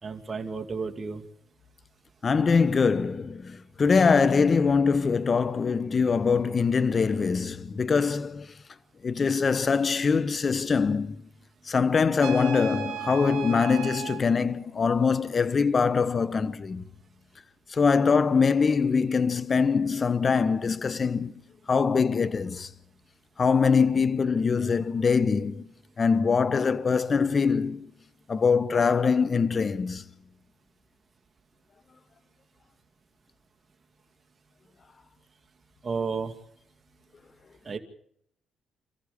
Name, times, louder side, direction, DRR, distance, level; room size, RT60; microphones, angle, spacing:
voice 1, 0.0-1.2 35.8-36.3 37.7-37.8, right 5 dB, 30° right, 2.6 m, -32 dB
voice 2, 2.2-8.4 9.0-11.2 11.7-16.8 17.8-21.3 21.7-22.7 23.4-25.7 26.0-27.9 28.3-30.0, left 5 dB, 40° left, 1.1 m, -23 dB
Trumpet, 12.2-14.2, right 12 dB, 80° right, 3.3 m, -36 dB
28.0 x 14.5 x 6.9 m
cardioid pair, 90°, 0 cm